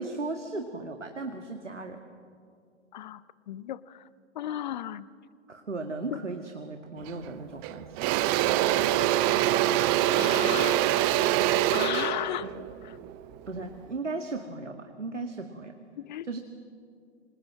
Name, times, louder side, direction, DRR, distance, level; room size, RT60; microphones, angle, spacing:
voice 1, 0.0-2.0 5.5-7.9 12.4-12.5 13.5-15.7 16.2-16.4, right 3 dB, 85° right, 5 dB, 2.0 m, -36 dB
voice 2, 3.5-4.0 4.3-5.1 6.1-6.2 10.1-10.8 11.2-11.3 11.7-12.5 12.8-13.0 16.0-16.3, left 12 dB, 40° left, 17 dB, 0.8 m, -34 dB
Engine / Drill, 7.1-7.3 7.6-13.8, right 13 dB, 20° right, 0.6 m, -25 dB
27.0 x 26.0 x 7.6 m, 2.3 s
figure-of-eight pair, 120°, 35 cm